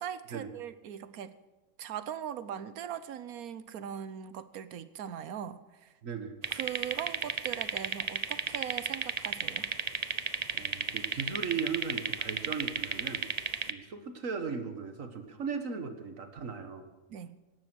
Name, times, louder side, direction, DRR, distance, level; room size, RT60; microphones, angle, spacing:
voice 1, 0.0-1.3 1.8-5.9 6.5-9.7 17.1-17.4, right 9 dB, 85° right, 14 dB, 1.3 m, -40 dB
voice 2, 6.0-6.4 10.5-13.3 13.7-16.9, right 5 dB, 65° right, 8 dB, 1.9 m, -37 dB
sound 1, 6.4-13.7, right 5 dB, 40° right, 0.7 m, -33 dB
17.0 x 12.5 x 6.3 m, 1.2 s
omnidirectional pair, 1.5 m